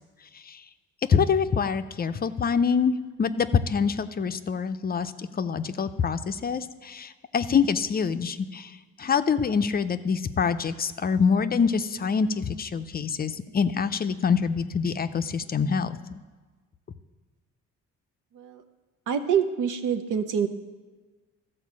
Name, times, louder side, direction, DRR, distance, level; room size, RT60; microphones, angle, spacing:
voice 1, 1.1-2.9 3.2-8.7 9.0-16.2, left 6 dB, 30° left, 10 dB, 0.5 m, -25 dB
voice 2, 19.1-20.5, right 7 dB, 85° right, 8 dB, 0.8 m, -26 dB
13.0 x 4.6 x 7.4 m, 1.3 s
cardioid pair, 90°, 30 cm